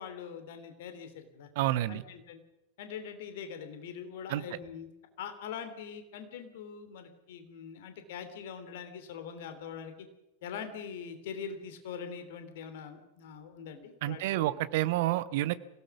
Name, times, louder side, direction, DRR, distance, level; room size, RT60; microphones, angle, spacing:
voice 1, 0.0-1.5 1.9-2.4 2.8-4.9 5.2-10.1 10.4-14.6, left 7 dB, 55° left, 9 dB, 2.9 m, -43 dB
voice 2, 1.6-2.0 4.3-4.4 14.0-15.6, right 15 dB, 50° right, 15 dB, 1.0 m, -29 dB
26.0 x 17.5 x 6.0 m, 0.91 s
figure-of-eight pair, 90°, 0 cm